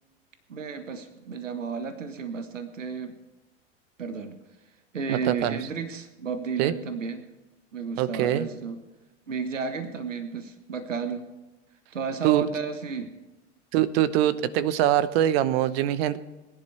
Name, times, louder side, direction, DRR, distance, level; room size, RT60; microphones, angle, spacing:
voice 1, 0.5-3.1 4.0-4.4 4.9-7.3 7.7-8.8 9.3-11.3 11.9-13.1, right 5 dB, 85° right, 8 dB, 1.4 m, -32 dB
voice 2, 5.1-5.6 6.6-6.7 8.0-8.5 12.2-12.4 13.7-16.2, right 12 dB, 55° right, 15 dB, 1.0 m, -23 dB
20.5 x 11.0 x 3.4 m, 1.1 s
hypercardioid pair, 95°, 37 cm